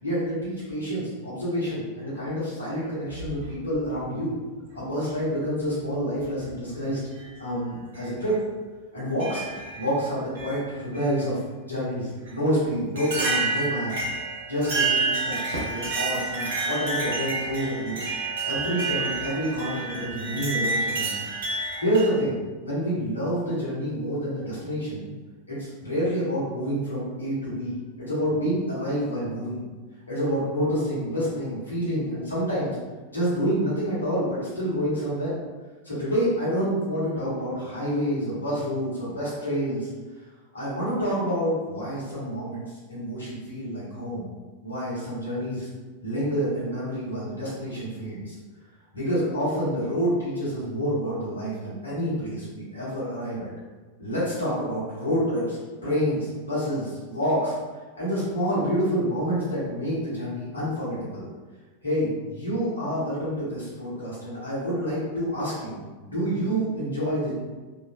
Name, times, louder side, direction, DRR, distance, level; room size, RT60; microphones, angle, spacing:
voice 1, 0.0-4.3 4.7-7.0 7.4-8.3 8.9-9.4 9.7-11.4 11.6-13.9 14.5-18.0 18.4-21.2 21.8-25.1 25.5-29.7 30.1-32.8 33.1-35.3 35.8-39.9 40.5-44.3 44.6-45.7 46.0-48.3 48.9-53.5 54.0-57.6 57.9-61.3 61.8-67.3, equal, 80° left, -9 dB, 1.3 m, -28 dB
sound 1, 3.1-3.9 5.1-5.2 6.2-6.5 7.1-7.3 7.9-8.1 9.2-9.9 10.3-11.1 12.2-12.3 12.9-22.1, right 3 dB, 55° right, 0.9 m, -29 dB
3.1 x 2.5 x 2.5 m, 1.3 s
figure-of-eight pair, 90°, 0 cm